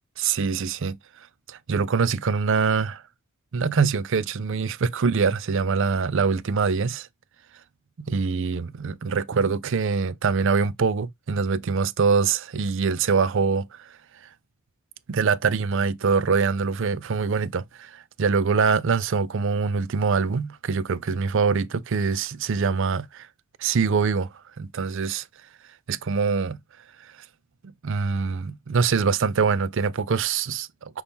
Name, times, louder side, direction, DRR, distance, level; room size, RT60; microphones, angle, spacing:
voice 1, 0.2-1.0 1.5-3.0 3.5-7.1 8.0-13.7 15.1-23.3 23.6-24.3 24.6-25.2 25.9-26.6 27.8-31.0, right 5 dB, 55° right, 0.4 m, -24 dB
5.6 x 2.7 x 3.4 m
head